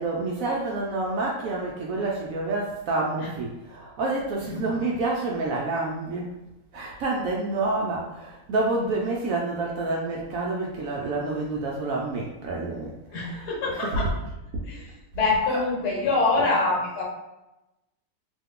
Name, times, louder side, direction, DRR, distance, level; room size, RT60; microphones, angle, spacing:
voice 1, 0.0-6.3 6.7-12.9 13.3-13.4 13.7-14.1 15.5-15.6, right 2 dB, 70° right, -2 dB, 0.8 m, -28 dB
voice 2, 4.5-4.8 13.1-14.1 14.7-17.0, left 3 dB, 75° left, -3 dB, 1.5 m, -25 dB
3.0 x 2.2 x 3.6 m, 0.95 s
omnidirectional pair, 1.8 m